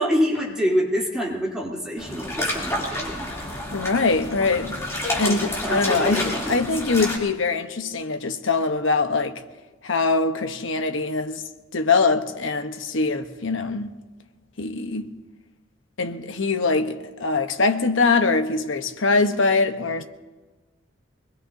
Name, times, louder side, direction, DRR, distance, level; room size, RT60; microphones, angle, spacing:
voice 1, 0.0-3.3 5.2-6.7, equal, 5° right, 3.3 m, -26 dB
sound 1, 2.0-7.2, left 1 dB, 15° left, 3.0 m, -29 dB
voice 2, 3.7-4.8 5.2-9.4 9.8-11.4 11.7-13.9 14.6-15.1 16.0-20.0, left 3 dB, 70° left, 1.0 m, -23 dB
24.5 x 21.0 x 2.7 m
head